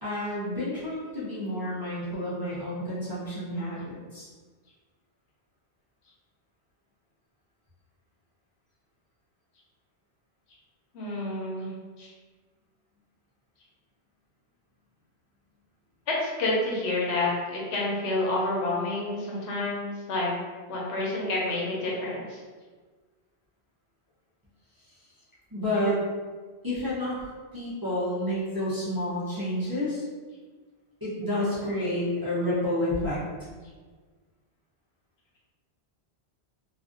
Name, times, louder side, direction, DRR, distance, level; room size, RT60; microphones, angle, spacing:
voice 1, 0.0-4.3 25.5-26.0 26.6-27.2 27.5-30.0 31.0-33.2 33.5-33.6, left 1 dB, 25° right, -11 dB, 0.5 m, -29 dB
voice 2, 10.9-11.7 12.0-12.1 16.1-20.3 20.7-22.4, left 2 dB, 85° left, -4 dB, 1.0 m, -29 dB
2.4 x 2.2 x 2.5 m, 1.4 s
omnidirectional pair, 1.1 m